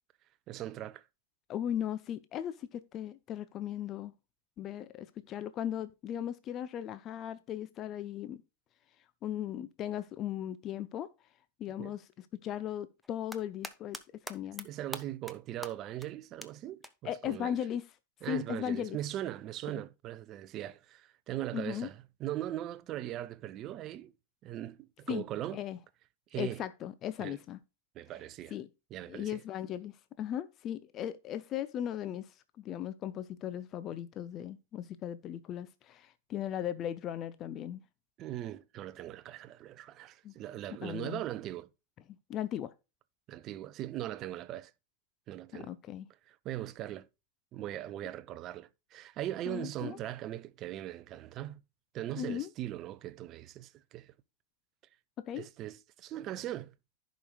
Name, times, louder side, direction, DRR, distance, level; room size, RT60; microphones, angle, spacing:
voice 1, 0.5-1.0 11.8-11.9 14.6-17.5 18.2-24.1 24.4-25.6 26.3-26.6 27.2-27.4 27.9-28.5 28.9-29.4 38.2-41.7 43.3-44.7 45.3-45.7 46.3-47.1 47.5-51.6 51.9-54.1 55.3-56.7, right 13 dB, 35° right, 0.6 m, -40 dB
voice 2, 1.5-4.1 4.6-8.4 9.2-11.1 11.6-14.0 14.3-14.7 17.0-17.8 18.3-19.0 21.5-21.9 25.1-25.2 25.5-25.8 26.4-27.6 28.5-28.7 29.1-37.8 40.2-40.3 40.8-41.2 42.3-42.7 45.5-46.1 49.5-50.0 52.2-52.5 55.2-55.5, left 10 dB, 30° left, 0.5 m, -37 dB
sound 1, 13.0-14.0 14.3-14.6 14.9-15.3 15.6-15.7 16.0-16.1 16.4-16.5 16.8-16.9 18.5-18.6, equal, ahead, 0.8 m, -41 dB
15.5 x 5.2 x 2.3 m
figure-of-eight pair, 90°, 0 cm